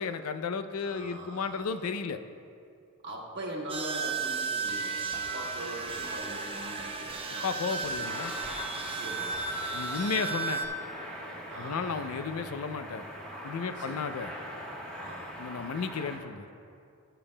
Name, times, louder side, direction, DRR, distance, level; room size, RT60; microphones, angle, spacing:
voice 1, 0.0-2.2 7.4-8.3 9.7-10.6 11.6-13.0 13.4-14.3 15.4-16.5, left 5 dB, 90° left, 10 dB, 0.5 m, -33 dB
voice 2, 0.8-1.8 3.0-8.4 8.9-9.5 11.5-12.0 13.8-14.2 15.0-15.4, right 1 dB, 55° right, -2 dB, 1.1 m, -42 dB
sound 1, 3.7-10.7, right 4 dB, 25° right, 0.8 m, -34 dB
sound 2, 8.0-16.2, equal, 5° left, 1.2 m, -42 dB
20.0 x 6.8 x 2.2 m, 2.4 s
head